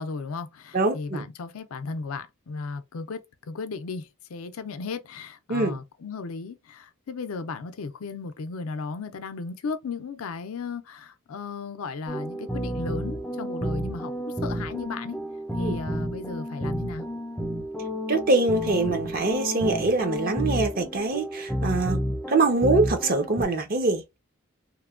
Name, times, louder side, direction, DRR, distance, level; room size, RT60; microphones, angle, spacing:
voice 1, 0.0-15.2 15.6-17.1, left 4 dB, 80° left, 0.5 m, -35 dB
voice 2, 0.7-1.3 5.5-5.8 15.6-15.8 18.1-22.0 22.3-24.2, right 3 dB, 45° right, 0.6 m, -24 dB
sound 1, 12.1-23.5, equal, 5° left, 0.4 m, -31 dB
3.0 x 2.2 x 2.4 m
head